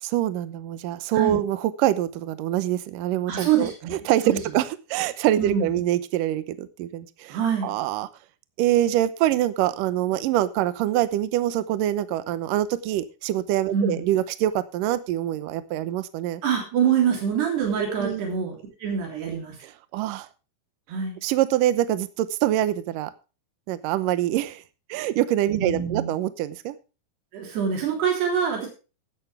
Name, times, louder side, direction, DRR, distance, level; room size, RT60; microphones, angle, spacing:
voice 1, 0.0-7.4 7.6-8.1 8.6-16.4 17.9-18.2 19.6-20.3 21.2-23.1 23.7-24.6 24.9-26.8, right 13 dB, 70° right, 13 dB, 2.2 m, -25 dB
voice 2, 3.3-3.9 4.3-4.4 5.4-5.7 7.3-7.7 13.7-14.0 16.4-19.6 20.9-21.2 25.6-26.1 27.3-28.7, right 7 dB, 90° right, 1 dB, 5.4 m, -25 dB
15.0 x 11.0 x 3.4 m, 0.33 s
omnidirectional pair, 4.6 m